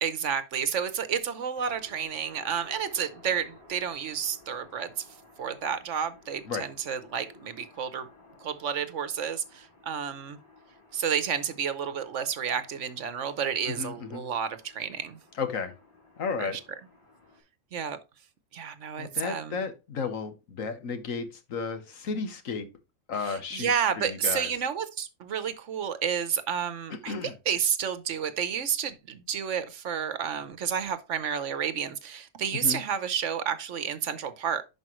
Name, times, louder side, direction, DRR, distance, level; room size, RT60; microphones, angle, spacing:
voice 1, 0.0-5.0 5.4-8.1 8.4-10.4 10.9-15.2 16.4-16.6 17.7-18.0 18.5-19.6 23.2-27.1 27.5-34.6, right 8 dB, 65° right, 1.1 m, -30 dB
sound 1, 1.5-17.4, left 2 dB, 20° left, 5.1 m, -56 dB
voice 2, 13.7-14.2 15.4-15.7 16.2-16.6 19.0-22.7 23.1-23.7 24.0-24.5 27.1-27.3 32.6-32.8, left 5 dB, 75° left, 1.5 m, -33 dB
11.0 x 5.1 x 3.1 m
omnidirectional pair, 1.4 m